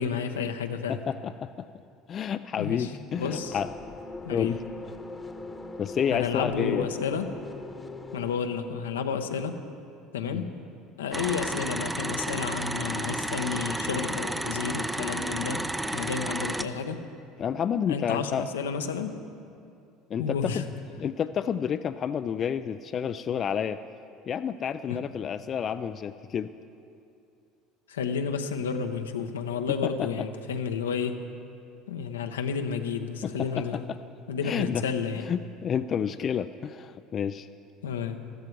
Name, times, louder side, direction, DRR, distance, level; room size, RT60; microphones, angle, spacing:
voice 1, 0.0-1.0 2.6-3.6 4.3-4.6 6.1-7.2 8.1-9.6 10.1-10.5 11.0-15.7 15.9-17.0 17.9-19.1 20.2-20.6 27.9-31.2 31.9-33.9 34.3-35.3 37.8-38.2, left 6 dB, 90° left, 6 dB, 0.8 m, -31 dB
voice 2, 0.9-1.7 2.1-3.7 4.3-4.6 5.8-6.9 10.3-10.5 17.4-18.4 20.1-20.6 21.0-23.8 24.3-26.5 29.8-30.1 33.2-34.0 34.4-34.8 35.2-37.5, left 8 dB, 45° left, 11 dB, 0.4 m, -30 dB
sound 1, 3.1-8.4, left 2 dB, 20° left, 1.1 m, -40 dB
sound 2, 11.1-16.7, right 1 dB, 10° right, 0.6 m, -32 dB
14.0 x 13.5 x 4.7 m, 2.5 s
hypercardioid pair, 75°, 0 cm